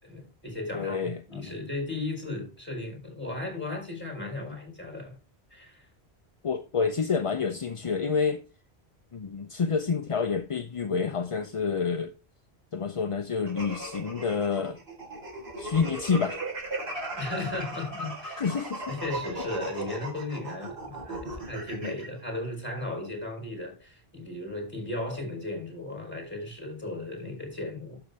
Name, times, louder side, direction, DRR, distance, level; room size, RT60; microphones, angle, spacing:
voice 1, 0.0-5.2 5.5-5.9 17.1-18.5 18.9-28.0, left 2 dB, 10° left, 4.4 m, -36 dB
voice 2, 0.7-1.5 6.4-8.4 9.1-12.1 12.7-14.8 15.6-16.4 18.4-19.0, left 5 dB, 40° left, 0.5 m, -28 dB
sound 1, 13.5-22.1, right 2 dB, 80° right, 4.5 m, -37 dB
12.0 x 7.0 x 3.5 m
omnidirectional pair, 1.1 m